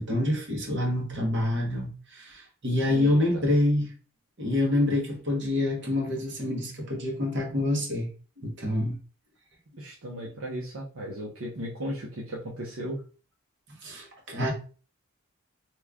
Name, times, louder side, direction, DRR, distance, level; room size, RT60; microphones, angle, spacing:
voice 1, 0.0-3.9 4.4-8.1 8.4-9.0 13.8-14.5, left 1 dB, 50° right, 1.0 m, -27 dB
voice 2, 2.9-3.2 9.8-13.0, equal, 70° right, 0.7 m, -36 dB
3.0 x 2.3 x 3.5 m
head